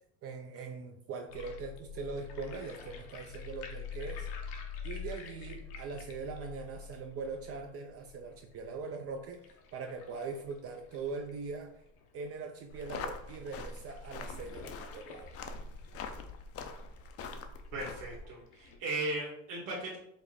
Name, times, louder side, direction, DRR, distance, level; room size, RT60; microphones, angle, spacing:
voice 1, 0.2-4.3 4.8-9.4 9.7-11.7 12.1-15.3, right 4 dB, 40° right, 4 dB, 0.4 m, -41 dB
sound 1, 1.3-12.3 12.7-12.8 13.0-13.1 13.7-18.8, left 6 dB, 70° left, 1.0 m, -46 dB
sound 2, 12.7-18.3, left 4 dB, 40° left, 0.5 m, -44 dB
voice 2, 17.7-20.0, right 2 dB, 60° right, -6 dB, 1.4 m, -37 dB
4.9 x 2.1 x 4.1 m, 0.77 s
supercardioid pair, 105°, 39 cm